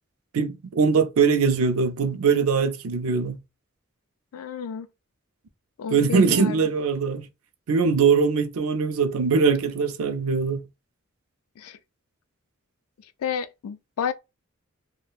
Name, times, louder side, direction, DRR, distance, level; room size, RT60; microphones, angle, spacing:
voice 1, 0.3-3.4 5.9-7.3 7.7-10.6, right 5 dB, 80° right, 0.4 m, -21 dB
voice 2, 4.3-4.9 5.8-6.6 11.6-11.8 13.2-14.1, left 7 dB, 85° left, 0.4 m, -31 dB
3.3 x 2.1 x 2.4 m
head